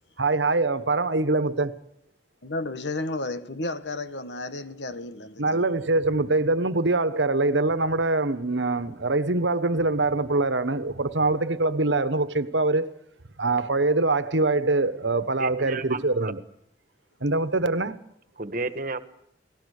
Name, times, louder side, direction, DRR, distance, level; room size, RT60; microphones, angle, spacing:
voice 1, 0.2-1.8 5.4-12.9 13.4-16.4 17.2-18.0, right 2 dB, 80° right, 1.4 m, -24 dB
voice 2, 2.4-5.7, left 2 dB, 70° left, 1.4 m, -32 dB
voice 3, 15.4-16.3 18.4-19.0, right 3 dB, 50° right, 1.6 m, -32 dB
29.5 x 19.0 x 6.7 m
head